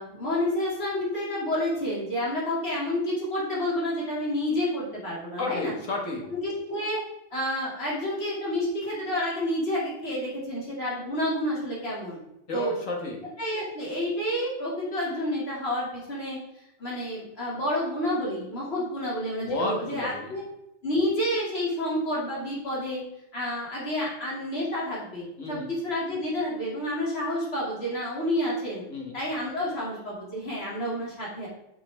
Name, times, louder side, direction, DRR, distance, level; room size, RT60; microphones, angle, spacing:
voice 1, 0.0-5.7 6.3-7.0 7.3-12.2 12.5-12.8 13.4-16.4 16.8-20.4 20.8-23.0 23.3-28.8 29.1-31.5, left 1 dB, 50° left, -5 dB, 2.9 m, -29 dB
voice 2, 5.4-6.3 12.5-13.2 19.4-20.3 25.4-25.6 28.9-29.1, left 3 dB, 85° left, 0 dB, 2.0 m, -31 dB
7.4 x 6.4 x 3.5 m, 0.86 s
omnidirectional pair, 1.3 m